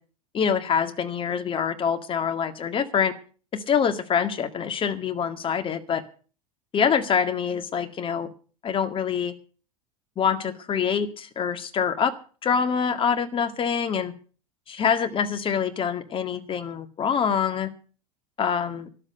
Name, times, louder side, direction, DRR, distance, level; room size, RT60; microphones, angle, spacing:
voice 1, 0.3-3.1 3.5-6.0 6.7-8.3 8.6-9.3 10.2-12.1 12.4-14.1 14.7-17.7 18.4-18.9, left 7 dB, 30° left, 8 dB, 2.0 m, -25 dB
13.0 x 12.0 x 6.6 m, 0.40 s
figure-of-eight pair, 80°, 19 cm